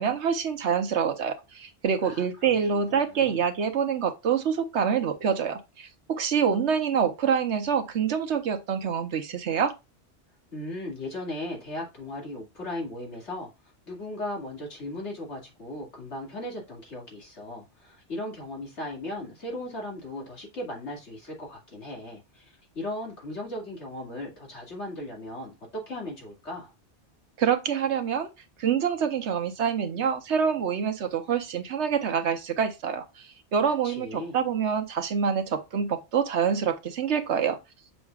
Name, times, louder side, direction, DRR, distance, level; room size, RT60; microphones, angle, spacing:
voice 1, 0.0-9.7 27.4-28.3 28.6-37.6, right 7 dB, 75° right, 1.2 m, -26 dB
voice 2, 2.0-3.4 10.5-13.5 13.9-26.7 33.8-34.4, left 1 dB, 85° left, 2.7 m, -37 dB
7.6 x 6.2 x 2.4 m
omnidirectional pair, 1.2 m